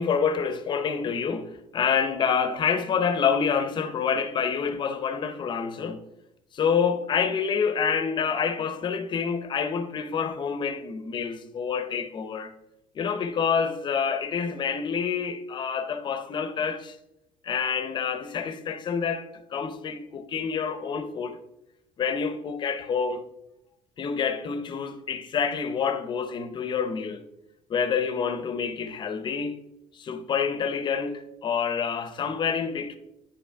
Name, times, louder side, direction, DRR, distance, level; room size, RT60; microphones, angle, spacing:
voice 1, 0.0-6.0 6.5-12.5 12.9-17.0 17.4-21.4 22.0-23.2 24.0-27.2 27.7-29.6 29.9-33.0, left 6 dB, 40° left, 0.7 m, -27 dB
9.9 x 5.1 x 3.4 m
cardioid pair, 130°, 13 cm